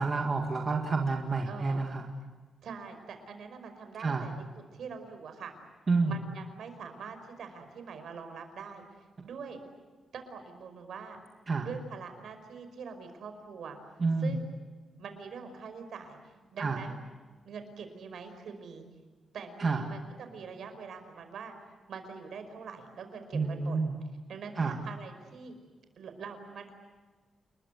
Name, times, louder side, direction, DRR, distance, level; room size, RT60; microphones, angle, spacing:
voice 1, 0.0-2.1 4.0-4.3 5.9-6.1 11.5-11.7 14.0-14.4 16.6-16.8 19.6-19.8 23.3-23.9 24.6-24.8, right 4 dB, 30° right, 2 dB, 2.0 m, -29 dB
voice 2, 1.4-1.8 2.6-5.5 6.0-8.8 9.2-9.6 10.1-11.2 11.6-13.8 14.2-14.5 15.0-16.2 16.5-17.0 17.4-18.8 19.3-21.5 21.9-23.8 24.3-25.5 26.0-26.7, right 5 dB, 60° right, 7 dB, 5.2 m, -44 dB
29.5 x 22.0 x 8.3 m, 1.4 s
wide cardioid pair, 180°, 0 cm